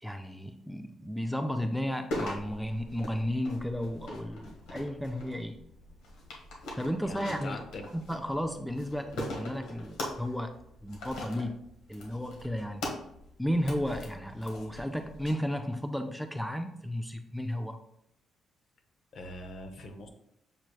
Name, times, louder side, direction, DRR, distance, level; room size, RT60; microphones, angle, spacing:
voice 1, 0.0-5.6 6.8-7.6 7.9-10.6 10.8-11.6 11.9-12.8 13.4-17.8, equal, ahead, 6 dB, 0.4 m, -33 dB
sound 1, 2.1-15.3, left 1 dB, 90° left, 0.9 m, -42 dB
voice 2, 7.0-7.8 19.1-20.1, left 2 dB, 60° left, 6 dB, 0.7 m, -42 dB
6.7 x 3.1 x 2.3 m, 0.77 s
cardioid pair, 90°, 0 cm